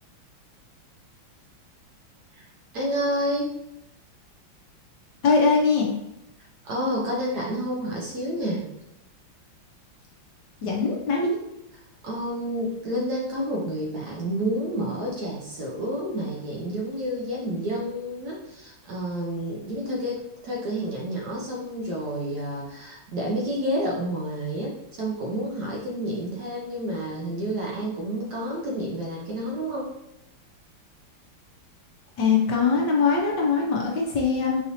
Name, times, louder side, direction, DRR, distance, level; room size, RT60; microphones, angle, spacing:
voice 1, 2.7-3.5 6.6-8.7 12.0-29.9, equal, 65° right, -2 dB, 1.2 m, -29 dB
voice 2, 5.2-5.9 10.6-11.4 32.2-34.6, left 4 dB, 70° left, -1 dB, 1.2 m, -22 dB
4.9 x 2.8 x 2.7 m, 0.85 s
omnidirectional pair, 2.2 m